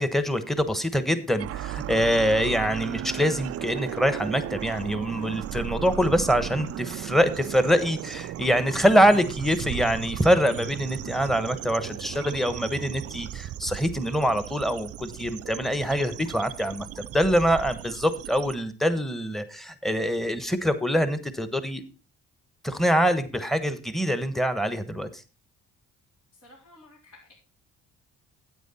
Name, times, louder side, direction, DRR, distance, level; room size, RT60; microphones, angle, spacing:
voice 1, 0.0-16.9 17.1-21.8 22.6-25.2, equal, ahead, 11 dB, 1.2 m, -24 dB
sound 1, 1.4-18.6, right 12 dB, 50° right, 0.4 m, -36 dB
voice 2, 26.3-27.3, left 2 dB, 65° left, -5 dB, 3.9 m, -53 dB
9.3 x 8.6 x 4.2 m, 0.34 s
cardioid pair, 90°, 30 cm